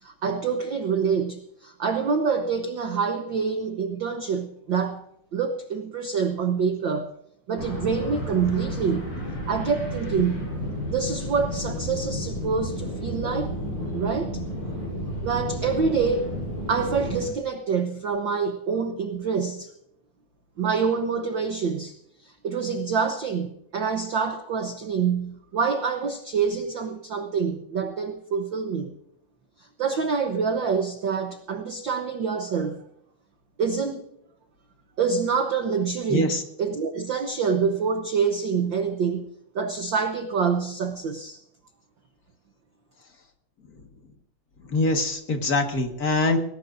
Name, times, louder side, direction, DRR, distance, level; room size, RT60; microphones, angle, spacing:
voice 1, 0.0-5.0 5.3-7.1 7.5-9.1 9.5-10.5 10.9-13.5 13.9-14.4 15.2-16.3 16.7-19.7 20.6-21.9 22.2-28.9 29.8-32.8 33.6-34.0 35.0-39.2 39.5-41.4, right 5 dB, 80° right, 7 dB, 1.0 m, -26 dB
sound 1, 7.6-17.3, equal, 75° left, 8.6 m, -32 dB
voice 2, 36.1-36.4 44.7-46.4, left 2 dB, 40° left, 4 dB, 1.6 m, -23 dB
21.0 x 17.5 x 2.6 m, 0.73 s
omnidirectional pair, 3.5 m